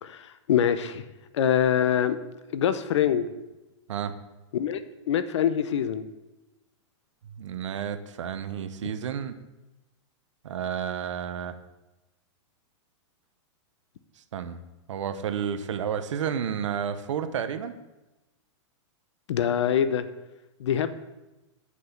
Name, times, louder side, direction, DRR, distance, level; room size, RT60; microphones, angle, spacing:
voice 1, 0.0-1.0 1.3-2.2 2.5-3.3 4.5-4.8 5.1-6.1 8.8-8.9 19.3-20.1 20.6-20.9, left 9 dB, 65° left, 12 dB, 0.8 m, -24 dB
voice 2, 7.4-9.4 10.4-11.6 14.3-14.6 14.9-17.8, right 8 dB, 75° right, 10 dB, 1.0 m, -31 dB
7.9 x 6.4 x 7.1 m, 1.0 s
supercardioid pair, 175°, 16 cm